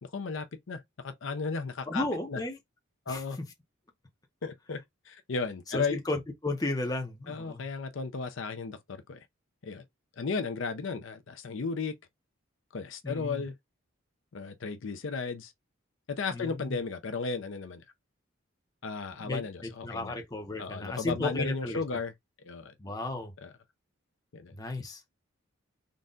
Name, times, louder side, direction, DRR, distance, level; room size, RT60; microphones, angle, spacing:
voice 1, 0.0-2.4 3.1-3.4 4.4-6.0 7.3-9.2 9.6-9.8 10.2-11.9 12.7-13.5 14.3-15.5 16.1-17.8 18.8-20.1 20.6-22.1 22.4-22.7 23.4-23.5 24.3-24.5, left 4 dB, 60° left, 0.5 m, -35 dB
voice 2, 1.9-2.6 3.1-3.2 5.7-7.6 13.0-13.4 16.3-16.8 19.2-21.8 22.8-23.3 24.5-25.0, left 2 dB, 20° left, 0.6 m, -34 dB
3.9 x 2.1 x 3.7 m
head